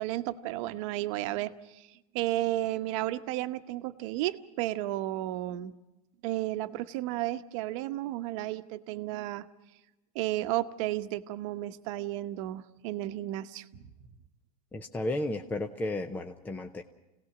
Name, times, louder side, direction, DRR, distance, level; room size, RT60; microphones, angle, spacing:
voice 1, 0.0-1.9 2.1-5.7 6.2-9.5 10.1-13.8, right 15 dB, 50° right, 10 dB, 1.1 m, -33 dB
voice 2, 14.7-16.8, left 2 dB, 10° left, 5 dB, 0.7 m, -33 dB
27.0 x 18.0 x 6.1 m, 1.0 s
supercardioid pair, 145°, 21 cm